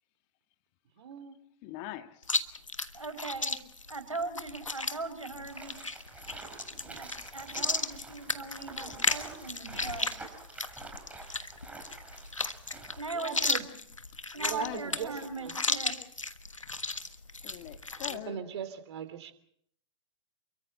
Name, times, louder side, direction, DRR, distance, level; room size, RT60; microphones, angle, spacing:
voice 1, 1.0-1.4 6.7-7.0 13.1-13.6 14.4-15.5 18.0-19.3, right 8 dB, 60° right, 10 dB, 3.3 m, -39 dB
voice 2, 1.6-2.3 14.6-15.1 17.4-18.4, left 14 dB, 40° left, 8 dB, 2.0 m, -42 dB
Chewing mastication, 2.2-18.2, left 3 dB, 90° left, 1.3 m, -35 dB
voice 3, 2.9-3.6 3.9-5.7 7.0-10.2 13.0-13.6 14.3-16.0, right 3 dB, 85° right, 6 dB, 5.5 m, -40 dB
sound 1, 5.5-13.0, right 3 dB, 10° right, 5.0 m, -47 dB
29.5 x 23.5 x 4.4 m, 0.66 s
figure-of-eight pair, 100°, 16 cm